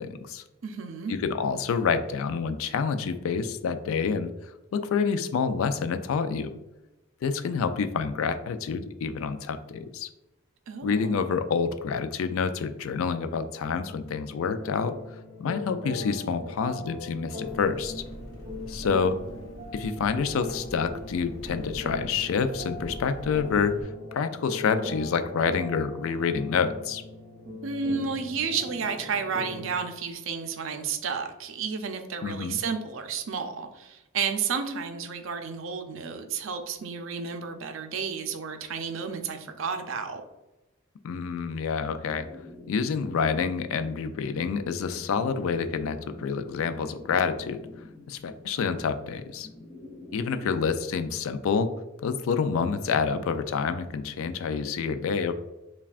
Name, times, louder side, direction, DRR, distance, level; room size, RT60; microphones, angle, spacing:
voice 1, 0.0-0.4 1.1-4.3 4.7-6.5 7.2-10.1 10.8-15.0 15.4-18.0 18.7-19.2 19.7-27.0 32.2-32.6 41.0-42.3 42.7-47.6 48.1-49.5 50.1-51.7 52.0-55.3, left 5 dB, 85° left, 10 dB, 0.3 m, -28 dB
voice 2, 0.6-1.1 10.7-11.2 27.6-40.2, right 5 dB, 75° right, 7 dB, 0.5 m, -32 dB
sound 1, 14.6-29.8, left 2 dB, 40° right, 0.8 m, -40 dB
Engine, 17.4-23.8, right 1 dB, 65° left, 0.9 m, -43 dB
sound 2, 42.1-50.5, left 2 dB, 25° left, 0.6 m, -47 dB
5.6 x 2.3 x 2.4 m, 0.99 s
head